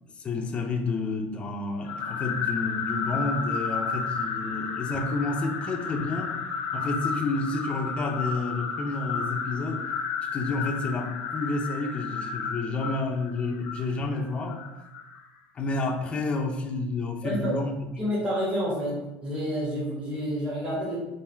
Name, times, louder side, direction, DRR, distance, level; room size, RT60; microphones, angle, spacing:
voice 1, 0.2-6.4 6.7-9.9 10.3-14.6 15.5-17.9, left 3 dB, 20° left, 2 dB, 0.5 m, -30 dB
sound 1, 1.9-15.2, left 5 dB, 85° left, 0.6 m, -32 dB
voice 2, 17.2-17.5 18.0-21.0, equal, 20° right, -6 dB, 1.3 m, -29 dB
3.5 x 2.6 x 4.3 m, 1.0 s
cardioid pair, 150°, 5 cm